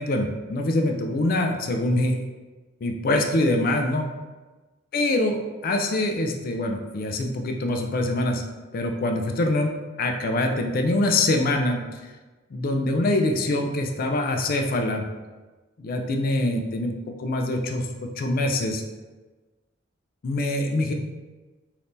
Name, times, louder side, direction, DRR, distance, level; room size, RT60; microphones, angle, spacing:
voice 1, 0.0-2.2 2.8-4.1 4.9-8.4 8.7-9.7 10.0-11.8 12.5-15.1 15.8-16.9 17.2-17.9 18.2-18.8 20.2-20.9, left 2 dB, 45° left, 4 dB, 0.4 m, -24 dB
3.5 x 2.8 x 2.5 m, 1.2 s
head